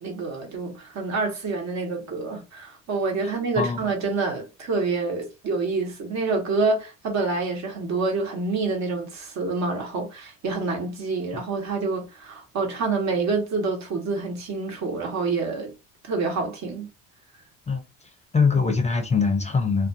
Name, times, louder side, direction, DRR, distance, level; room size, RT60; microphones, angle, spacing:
voice 1, 0.0-15.7 16.0-16.9, right 3 dB, 55° right, 1.1 m, -27 dB
voice 2, 3.2-3.8 17.7-17.8 18.3-19.9, left 5 dB, 20° left, 0.5 m, -23 dB
2.5 x 2.3 x 2.6 m
cardioid pair, 100°, 33 cm